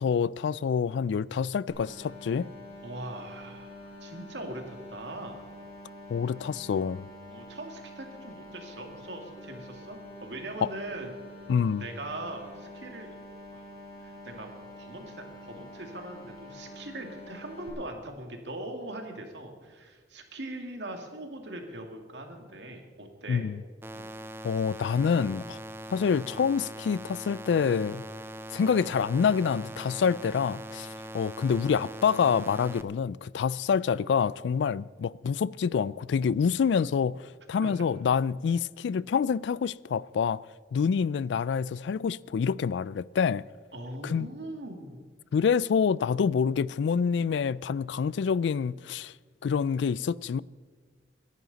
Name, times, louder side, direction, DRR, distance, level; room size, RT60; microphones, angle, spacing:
voice 1, 0.0-2.5 6.1-7.1 10.6-10.7 11.5-11.8 23.3-23.6 24.4-25.6 25.9-28.0 28.5-30.9 31.1-40.4 40.7-43.4 44.0-44.3 45.3-49.1 49.4-50.4, left 6 dB, 80° left, 0.3 m, -27 dB
sound 1, 1.7-17.7, left 1 dB, 35° left, 6.0 m, -47 dB
voice 2, 2.8-5.4 7.3-11.1 11.7-13.2 13.5-13.7 14.0-14.5 14.8-23.5 23.9-24.1 37.6-37.9 43.7-45.0, right 1 dB, 80° right, 2.1 m, -41 dB
sound 2, 23.8-32.8, right 1 dB, 15° right, 0.5 m, -42 dB
24.0 x 10.5 x 4.0 m
head